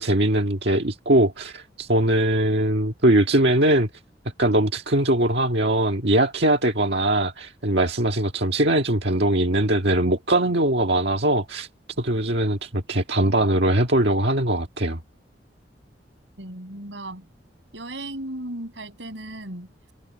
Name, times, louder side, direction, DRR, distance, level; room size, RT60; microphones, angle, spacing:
voice 1, 0.0-3.9 4.4-11.7 12.0-15.0, right 1 dB, 65° right, 1.7 m, -21 dB
voice 2, 16.4-17.2 17.7-19.9, right 1 dB, 90° right, 6.5 m, -36 dB
head